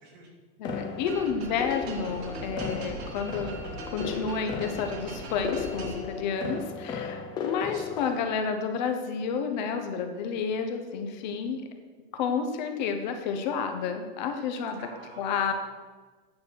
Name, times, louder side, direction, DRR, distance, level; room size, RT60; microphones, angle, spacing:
voice 1, 0.6-3.6 3.9-11.7 12.1-14.8 15.2-15.5, left 6 dB, 45° left, 6 dB, 0.9 m, -30 dB
sound 1, 0.6-8.3, left 6 dB, 15° left, 0.5 m, -36 dB
sound 2, 1.0-6.4, right 3 dB, 85° right, 1.9 m, -40 dB
voice 2, 14.8-15.5, right 2 dB, 50° right, -3 dB, 3.0 m, -47 dB
9.5 x 4.7 x 6.2 m, 1.4 s
supercardioid pair, 175°, 31 cm